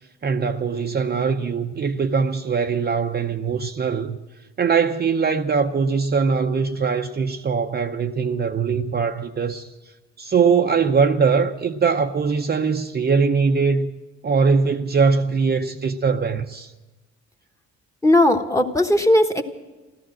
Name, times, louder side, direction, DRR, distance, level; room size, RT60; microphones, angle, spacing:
voice 1, 0.2-4.2 4.6-9.7 10.2-13.9 14.2-16.7, right 5 dB, 35° right, 0.6 m, -21 dB
voice 2, 18.0-19.4, left 1 dB, 10° left, 1.2 m, -17 dB
14.0 x 13.5 x 7.5 m
cardioid pair, 90°, 30 cm